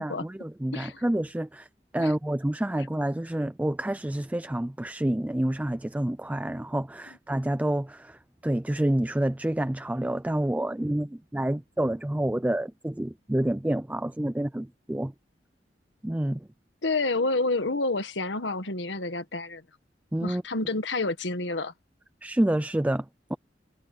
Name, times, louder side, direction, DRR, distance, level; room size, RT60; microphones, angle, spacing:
voice 1, 0.0-1.7 1.9-15.1 16.0-16.5 20.1-20.4 22.2-23.4, right 1 dB, 10° right, 0.4 m, -28 dB
voice 2, 0.7-1.0 2.0-2.1 16.8-19.6 20.2-21.7, left 2 dB, 85° left, 1.6 m, -29 dB
head